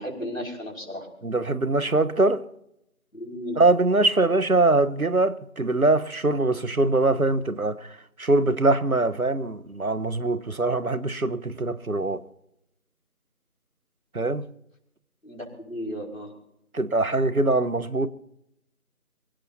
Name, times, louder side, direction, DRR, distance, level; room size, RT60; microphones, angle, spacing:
voice 1, 0.0-1.1 3.1-3.6 15.2-16.3, equal, 65° left, 5.9 m, -34 dB
voice 2, 1.2-2.4 3.6-7.9 8.2-12.2 14.1-14.5 16.7-18.1, right 2 dB, 75° right, 1.3 m, -22 dB
26.5 x 16.5 x 2.8 m
figure-of-eight pair, 180°, 43 cm